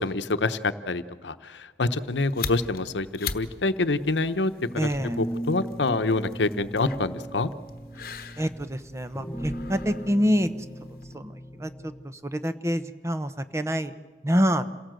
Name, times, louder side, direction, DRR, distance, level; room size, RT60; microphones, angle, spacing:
voice 1, 0.0-4.9 5.2-7.5, left 3 dB, 85° left, 12 dB, 0.9 m, -26 dB
sound 1, 2.0-11.2, left 6 dB, 55° left, 1.1 m, -41 dB
voice 2, 4.8-5.2 8.4-10.5 11.1-11.3 11.6-11.7 12.3-13.9 14.2-14.6, equal, 15° right, 11 dB, 0.8 m, -26 dB
sound 2, 5.0-12.0, equal, 15° left, 2.0 m, -37 dB
27.5 x 17.5 x 7.7 m, 1.4 s
head